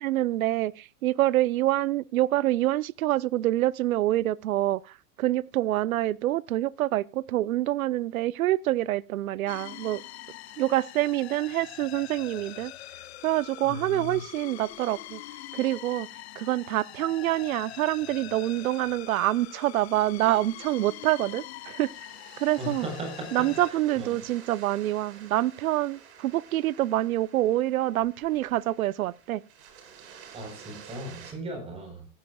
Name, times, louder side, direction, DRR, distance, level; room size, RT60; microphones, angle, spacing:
voice 1, 0.0-4.8 5.2-10.0 10.6-12.7 13.2-15.2 15.5-16.1 16.4-21.9 22.4-22.9 23.3-29.4, right 15 dB, 80° right, 0.8 m, -26 dB
sound 1, 9.5-23.7, left 15 dB, 50° left, 0.8 m, -44 dB
voice 2, 13.6-14.2 22.6-24.2 30.3-32.1, equal, 15° right, 4.2 m, -37 dB
sound 2, 18.4-31.3, right 7 dB, 55° right, 5.0 m, -51 dB
24.5 x 10.5 x 2.3 m
supercardioid pair, 165°, 41 cm